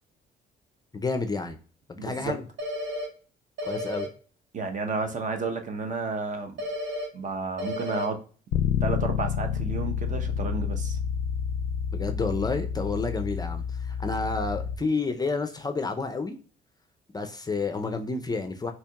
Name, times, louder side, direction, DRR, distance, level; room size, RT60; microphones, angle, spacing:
voice 1, 0.9-1.6 1.9-2.4 3.6-4.1 11.9-16.4 17.1-18.7, left 3 dB, 20° left, 7 dB, 0.4 m, -30 dB
voice 2, 2.0-2.3 4.5-6.6 7.1-8.2 8.8-11.0, right 4 dB, 40° right, 6 dB, 0.7 m, -31 dB
sound 1, 2.6-3.1 3.6-4.1 6.6-7.1 7.6-8.1, left 1 dB, 70° right, 0.9 m, -32 dB
Bass guitar, 8.5-14.8, left 7 dB, 80° left, 0.4 m, -29 dB
4.3 x 2.8 x 2.2 m, 0.39 s
cardioid pair, 90°, 19 cm